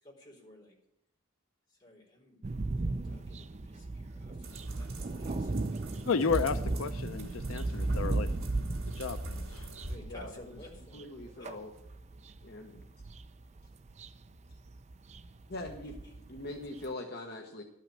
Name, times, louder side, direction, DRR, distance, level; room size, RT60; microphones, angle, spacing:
voice 1, 0.0-0.8 1.7-4.5 4.8-5.5 9.9-11.6 15.8-16.2, left 1 dB, 20° left, 3.9 m, -54 dB
sound 1, 2.4-16.9, right 2 dB, 35° right, 0.5 m, -37 dB
sound 2, 4.4-10.0, right 1 dB, 85° right, 2.6 m, -43 dB
voice 2, 6.1-8.3 9.0-9.7, left 5 dB, 85° left, 0.5 m, -32 dB
voice 3, 10.9-11.7 12.4-12.8 15.5-15.9 16.3-17.6, left 2 dB, 50° left, 1.1 m, -41 dB
12.5 x 5.7 x 9.0 m
head